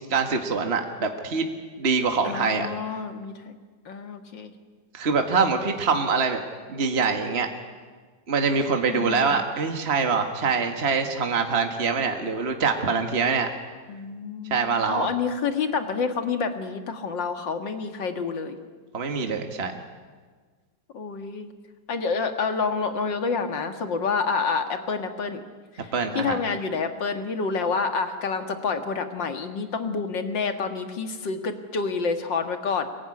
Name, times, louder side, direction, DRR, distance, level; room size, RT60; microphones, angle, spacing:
voice 1, 0.1-1.5 1.8-2.7 4.9-6.4 6.7-7.5 8.3-13.5 14.5-15.1 18.9-19.8 25.9-26.4, right 5 dB, 35° right, 5 dB, 1.9 m, -24 dB
voice 2, 2.2-3.6 3.9-4.5 5.4-5.7 8.9-9.4 13.9-18.6 20.9-21.5 21.9-25.4 25.7-32.9, left 5 dB, 70° left, 7 dB, 2.7 m, -28 dB
26.0 x 22.0 x 9.9 m, 1.5 s
omnidirectional pair, 2.0 m